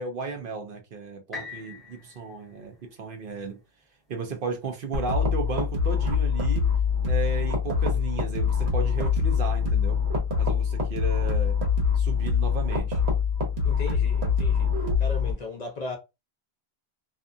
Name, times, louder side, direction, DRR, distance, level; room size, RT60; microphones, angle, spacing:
voice 1, 0.0-3.6 4.1-6.7 7.0-10.1 10.4-11.6 12.0-13.0, right 4 dB, 60° right, 0.8 m, -34 dB
sound 1, 1.3-5.3 5.8-5.9, left 4 dB, ahead, 0.9 m, -45 dB
sound 2, 4.9-15.3, left 6 dB, 90° right, 1.2 m, -24 dB
voice 2, 13.6-14.7 15.0-16.0, left 3 dB, 50° left, 0.6 m, -36 dB
2.6 x 2.3 x 2.5 m
omnidirectional pair, 1.1 m